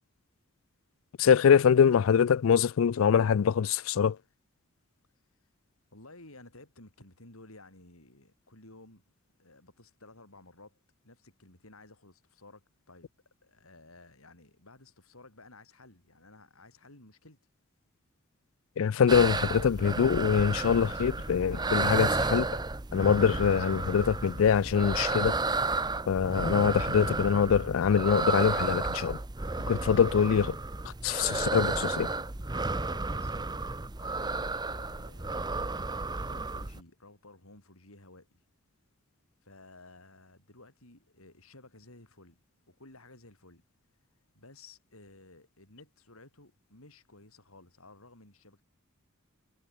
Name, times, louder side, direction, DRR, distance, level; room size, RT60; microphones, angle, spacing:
voice 1, 1.2-4.2 18.8-22.5 22.9-25.4 26.1-29.2 29.7-30.6 31.0-32.1, left 7 dB, 70° left, 0.4 m, -24 dB
voice 2, 5.9-9.0 9.4-13.1 13.4-17.4 32.5-33.6 34.0-35.5 36.2-38.4 39.4-42.4 42.7-43.6 44.3-48.6, left 2 dB, 90° left, 7.1 m, -55 dB
sound 1, 19.1-36.8, right 3 dB, 20° right, 0.8 m, -32 dB
head